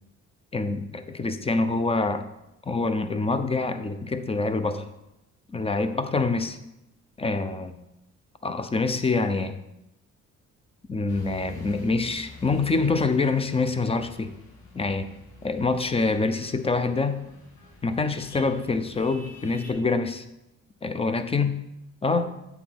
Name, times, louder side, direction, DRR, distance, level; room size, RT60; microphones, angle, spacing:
voice 1, 0.5-2.3 2.7-4.9 5.5-6.6 7.2-7.8 8.4-9.6 10.9-14.4 14.7-15.1 15.4-17.2 17.8-20.2 20.8-21.5 22.0-22.3, left 3 dB, 20° left, 10 dB, 0.7 m, -25 dB
sound 1, 11.1-19.7, left 1 dB, 75° left, 2.4 m, -48 dB
8.2 x 4.1 x 6.0 m, 0.89 s
cardioid pair, 90°, 30 cm